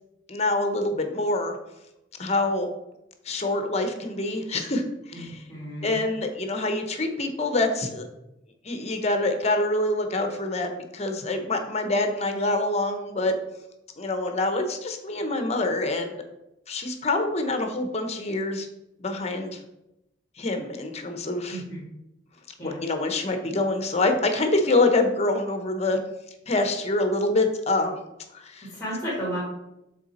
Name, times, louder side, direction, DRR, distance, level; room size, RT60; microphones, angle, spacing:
voice 1, 0.3-1.6 2.2-2.7 3.3-5.4 5.8-8.1 8.6-13.3 14.0-16.1 16.7-18.7 19.0-19.6 20.4-21.6 22.6-26.0 26.5-28.0 28.3-28.7, left 2 dB, 35° left, 6 dB, 0.8 m, -26 dB
voice 2, 5.1-6.0 21.5-21.8 22.6-22.8 28.7-29.4, equal, 10° left, -8 dB, 2.2 m, -33 dB
6.8 x 4.0 x 4.2 m, 0.89 s
head